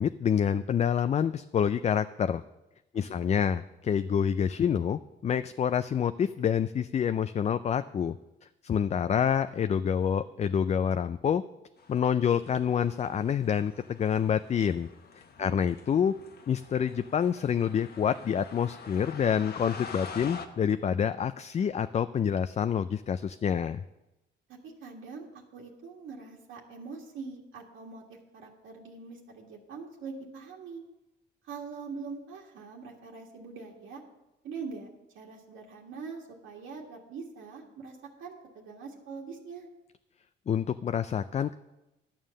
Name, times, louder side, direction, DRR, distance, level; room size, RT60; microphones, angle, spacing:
voice 1, 0.0-2.4 2.9-8.2 8.6-11.4 11.9-14.9 15.4-16.1 16.5-23.8 40.5-41.5, left 8 dB, 35° left, 11 dB, 0.4 m, -27 dB
voice 2, 2.9-3.3 15.4-15.7 24.5-30.8 31.4-34.0 34.4-34.9 35.1-39.7, right 5 dB, 80° right, -2 dB, 1.7 m, -43 dB
sound 1, 11.8-20.5, left 5 dB, 55° left, 1.1 m, -46 dB
11.5 x 7.2 x 6.4 m, 0.97 s
cardioid pair, 90°, 20 cm